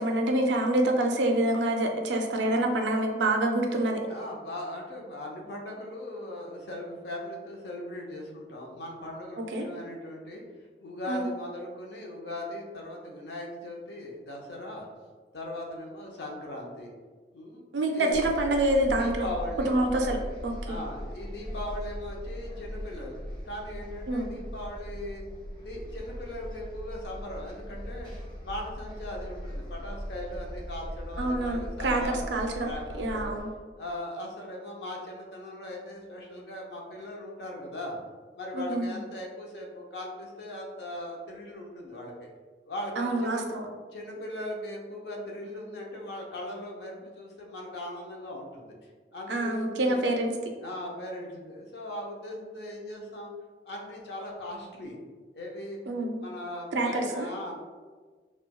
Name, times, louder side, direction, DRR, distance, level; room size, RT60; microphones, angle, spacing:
voice 1, 0.0-4.0 9.5-9.7 11.1-11.3 17.7-19.3 19.7-20.2 20.4-20.8 24.1-24.3 31.2-32.7 33.0-33.5 38.5-39.0 43.0-43.7 49.3-50.3 55.9-56.2 56.7-57.3, right 1 dB, 80° right, 3 dB, 0.4 m, -26 dB
voice 2, 4.1-14.9 15.3-16.9 17.3-17.6 17.9-18.2 18.9-19.8 20.7-25.2 25.6-28.1 28.4-33.3 33.8-38.0 38.3-42.3 42.7-43.5 43.9-48.8 49.1-50.0 50.6-53.3 53.7-55.0 55.3-55.8 56.2-57.6, left 1 dB, 70° left, 0 dB, 0.6 m, -39 dB
sound 1, 18.1-33.4, equal, 25° left, 0.7 m, -39 dB
4.3 x 2.2 x 2.2 m, 1.5 s
head